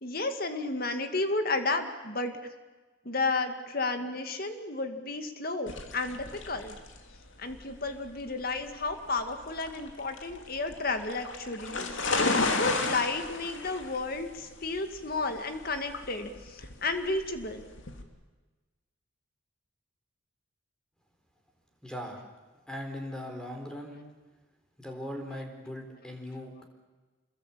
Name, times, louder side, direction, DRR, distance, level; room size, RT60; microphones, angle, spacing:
voice 1, 0.0-2.3 3.0-6.8 7.4-17.7, left 3 dB, 45° left, 7 dB, 2.2 m, -32 dB
sound 1, 5.7-18.0, left 3 dB, 65° left, 2.8 m, -34 dB
voice 2, 21.8-22.3 22.7-24.0 24.8-26.6, left 1 dB, 5° left, 3 dB, 4.0 m, -39 dB
27.0 x 22.0 x 8.6 m, 1.3 s
head